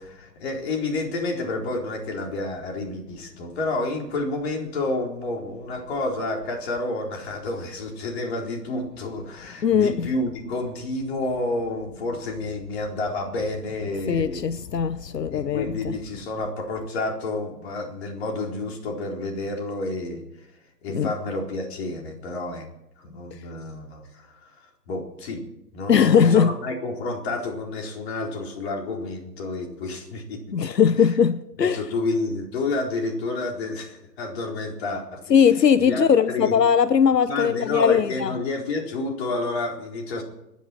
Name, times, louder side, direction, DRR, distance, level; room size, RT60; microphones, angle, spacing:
voice 1, 0.0-14.5 15.3-20.2 20.8-22.7 23.0-25.4 25.7-30.4 31.0-31.2 31.6-35.2 35.8-36.6 37.3-40.2, left 2 dB, 40° left, 4.2 m, -30 dB
voice 2, 9.6-10.1 14.1-15.9 20.9-21.1 25.9-26.5 30.5-31.8 35.3-38.3, left 7 dB, 85° left, 0.9 m, -19 dB
25.5 x 10.5 x 4.5 m
hypercardioid pair, 140°, 48 cm